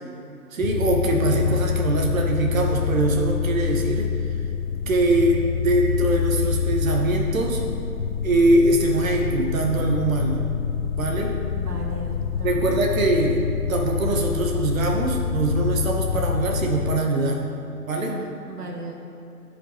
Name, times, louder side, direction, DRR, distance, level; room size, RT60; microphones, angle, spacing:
voice 1, 0.5-4.1 4.9-7.6 8.2-10.4 11.0-11.4 12.4-17.4 17.9-18.1, right 2 dB, 60° right, 1 dB, 1.1 m, -22 dB
sound 1, 0.6-17.0, left 7 dB, 65° left, 0.8 m, -26 dB
voice 2, 11.2-12.6 18.0-19.1, right 1 dB, 85° right, 1 dB, 1.1 m, -37 dB
11.0 x 5.2 x 3.1 m, 2.9 s
figure-of-eight pair, 150°, 45 cm